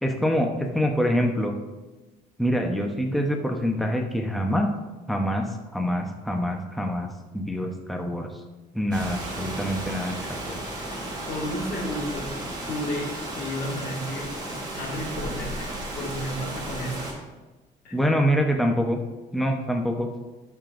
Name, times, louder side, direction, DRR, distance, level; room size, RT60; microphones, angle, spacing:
voice 1, 0.0-1.5 2.4-4.7 5.1-5.5 5.7-7.1 7.3-8.3 8.7-10.6 17.9-19.0 19.3-20.1, equal, ahead, 2 dB, 0.9 m, -25 dB
Rain, 8.9-17.1, right 1 dB, 25° right, 3.0 m, -34 dB
voice 2, 11.3-12.3 12.7-14.3 14.7-17.1 17.8-18.0, equal, 60° left, -1 dB, 2.0 m, -32 dB
12.5 x 6.8 x 2.6 m, 1.2 s
cardioid pair, 110°, 17 cm